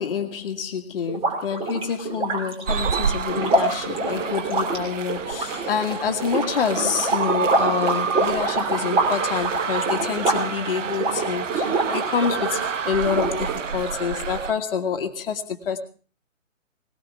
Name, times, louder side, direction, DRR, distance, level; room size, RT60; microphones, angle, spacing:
voice 1, 0.0-15.8, left 7 dB, 45° left, 7 dB, 1.8 m, -27 dB
sound 1, 1.1-12.7 13.1-13.9, right 2 dB, 15° right, 2.9 m, -26 dB
sound 2, 2.7-14.5, right 6 dB, 70° right, 0.9 m, -29 dB
19.5 x 18.5 x 3.5 m, 0.40 s
figure-of-eight pair, 135°, 39 cm